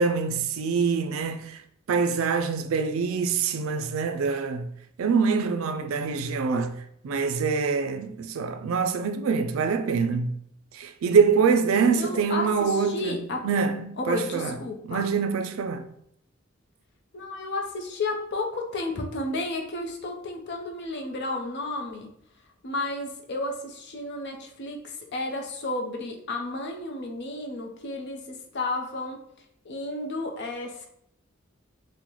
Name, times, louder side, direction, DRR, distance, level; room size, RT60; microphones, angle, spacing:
voice 1, 0.0-1.6 1.9-4.7 5.0-6.8 7.0-10.4 10.7-13.2 13.4-14.5 14.8-15.9, right 5 dB, 85° right, 0.4 m, -25 dB
voice 2, 11.9-13.4 14.0-15.1 17.1-22.1 22.6-29.2 29.6-30.9, left 2 dB, 60° left, 0.6 m, -32 dB
3.8 x 2.1 x 3.0 m
head